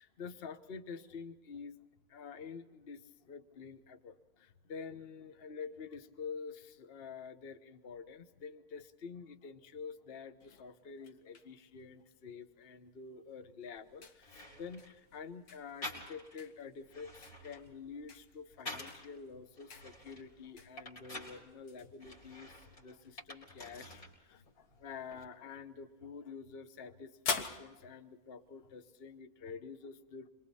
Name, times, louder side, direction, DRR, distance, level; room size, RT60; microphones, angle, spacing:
voice 1, 0.0-1.8 2.1-30.3, left 5 dB, 45° left, 9 dB, 1.2 m, -48 dB
sound 1, 10.4-29.2, left 4 dB, 85° left, 2.0 m, -48 dB
sound 2, 13.8-13.9 14.2-15.0 15.8-16.4 16.8-19.1 19.6-21.4 22.0-24.2 24.5-25.2, left 1 dB, 70° left, 4.8 m, -48 dB
27.0 x 23.0 x 4.2 m, 1.2 s
omnidirectional pair, 1.6 m